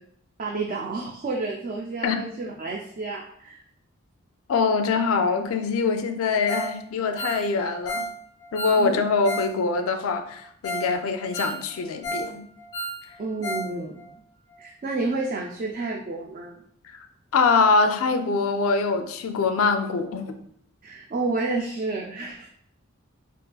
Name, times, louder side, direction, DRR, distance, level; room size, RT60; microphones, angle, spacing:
voice 1, 0.4-3.6 8.8-9.0 13.2-14.0 14.6-16.6 20.8-22.5, right 3 dB, 40° right, -2 dB, 0.4 m, -30 dB
voice 2, 4.5-8.1 8.5-12.5 16.8-17.1 17.3-20.4, left 4 dB, 90° left, 7 dB, 0.4 m, -24 dB
Ringtone, 6.5-6.8 7.0-9.5 9.8-9.9 10.3-10.4 10.6-10.9 11.2-12.3 12.6-13.7 14.0-14.1 14.5-14.6, right 1 dB, 20° left, 0.6 m, -32 dB
3.9 x 2.4 x 2.3 m, 0.67 s
head